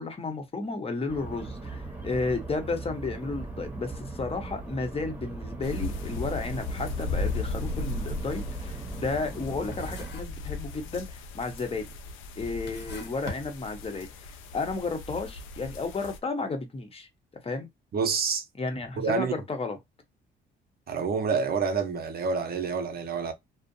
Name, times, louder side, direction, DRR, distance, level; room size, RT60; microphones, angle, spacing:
voice 1, 0.0-11.9 12.4-14.1 14.5-17.1 17.4-17.7 18.6-19.8, left 3 dB, 30° left, 0.8 m, -33 dB
sound 1, 1.1-10.1, right 3 dB, 10° right, 1.0 m, -39 dB
sound 2, 5.6-16.2, left 2 dB, 85° left, 0.4 m, -36 dB
sound 3, 9.7-10.5 10.8-11.3 11.9-12.0 12.5-14.2, left 3 dB, 60° left, 0.9 m, -43 dB
voice 2, 17.9-18.4 19.0-19.3 20.9-23.3, right 5 dB, 50° right, 0.7 m, -28 dB
2.5 x 2.1 x 2.6 m
cardioid pair, 90°, 20 cm